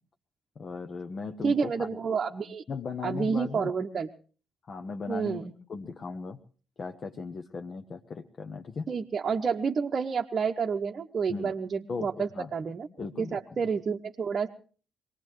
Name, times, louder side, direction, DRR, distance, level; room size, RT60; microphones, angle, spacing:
voice 1, 0.6-2.0 2.7-3.7 4.7-5.4 5.7-6.4 6.8-8.9 11.3-11.5 11.9-12.5 13.0-13.4, left 4 dB, 45° left, 5 dB, 0.9 m, -37 dB
voice 2, 1.4-2.6 3.0-4.1 5.1-5.5 8.9-12.9 13.2-14.5, right 5 dB, 45° right, 1 dB, 0.8 m, -29 dB
23.5 x 18.5 x 3.1 m, 0.41 s
figure-of-eight pair, 45°, 0 cm